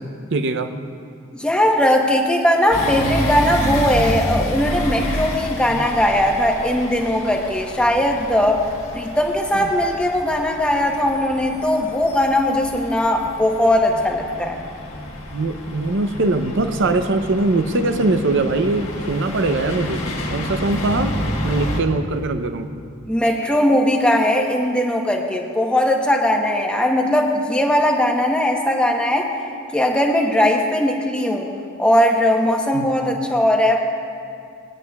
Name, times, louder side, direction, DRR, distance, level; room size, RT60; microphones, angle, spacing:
voice 1, 0.3-0.7 5.7-5.8 15.3-20.0 20.3-21.2 21.4-22.7 32.7-32.9, right 2 dB, 55° right, 9 dB, 0.6 m, -21 dB
voice 2, 1.3-8.6 8.9-14.6 23.1-29.3 29.7-31.5 31.8-33.8, left 1 dB, 5° left, 0 dB, 0.9 m, -19 dB
sound 1, 2.7-21.8, left 1 dB, 70° left, 1.5 m, -29 dB
19.5 x 9.9 x 2.3 m, 2.3 s
head